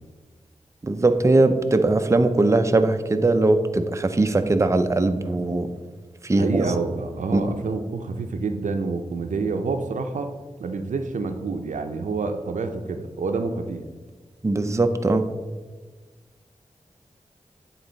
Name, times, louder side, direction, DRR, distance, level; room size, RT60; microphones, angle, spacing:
voice 1, 0.8-5.7 6.2-6.7 7.3-7.4 14.4-15.3, right 2 dB, 25° right, 8 dB, 0.5 m, -20 dB
voice 2, 6.4-10.3 10.6-13.8, right 4 dB, 85° right, 7 dB, 0.5 m, -28 dB
9.3 x 3.9 x 3.9 m, 1.3 s
cardioid pair, 60°, 12 cm